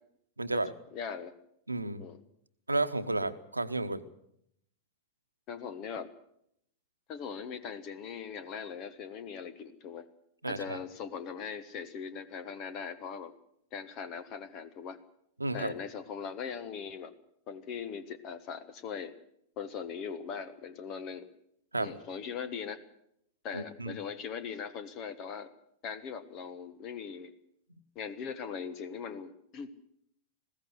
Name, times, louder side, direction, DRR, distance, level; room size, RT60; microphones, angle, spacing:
voice 1, 0.4-0.7 1.7-2.1 2.7-4.0 10.4-10.8 15.4-15.7 21.7-22.0 23.5-24.0, right 2 dB, 85° right, 11 dB, 1.1 m, -32 dB
voice 2, 0.9-1.3 2.0-2.2 5.5-6.1 7.1-10.1 10.4-13.3 13.7-15.0 15.5-17.1 17.5-19.1 19.6-21.3 21.8-22.8 23.4-25.5 25.8-27.3 27.9-29.8, left 6 dB, 40° left, 13 dB, 1.3 m, -40 dB
21.0 x 16.0 x 8.0 m, 0.75 s
figure-of-eight pair, 90°, 0 cm